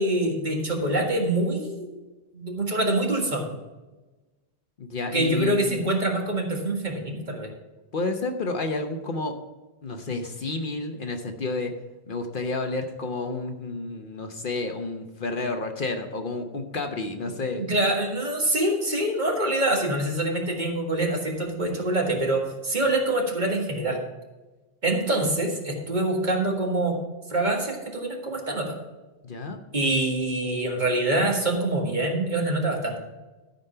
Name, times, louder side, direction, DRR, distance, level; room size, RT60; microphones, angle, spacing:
voice 1, 0.0-1.9 2.3-3.5 5.1-7.5 17.6-24.0 24.8-27.0 27.3-28.8 29.7-33.0, right 1 dB, 45° right, 1 dB, 1.9 m, -25 dB
voice 2, 4.8-5.9 7.9-9.3 9.8-11.7 12.1-17.6 29.2-29.6, left 3 dB, 55° left, 5 dB, 1.0 m, -30 dB
12.5 x 5.2 x 5.6 m, 1.2 s
omnidirectional pair, 1.1 m